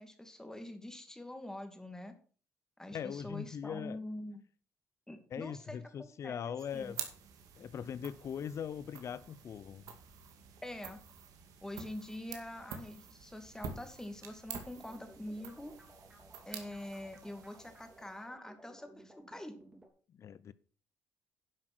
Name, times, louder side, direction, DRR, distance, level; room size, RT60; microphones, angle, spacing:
voice 1, 0.0-2.1 2.8-4.4 5.1-6.9 10.6-11.0 11.6-15.7 16.5-19.5, left 1 dB, 10° left, 2.4 m, -45 dB
voice 2, 2.9-4.0 5.3-7.0 7.6-9.9 20.1-20.5, left 8 dB, 55° left, 0.6 m, -41 dB
sound 1, 6.6-18.3, right 7 dB, 75° right, 2.1 m, -49 dB
sound 2, 14.7-19.9, right 1 dB, 15° right, 3.3 m, -58 dB
11.0 x 5.9 x 6.1 m
supercardioid pair, 75°, 6 cm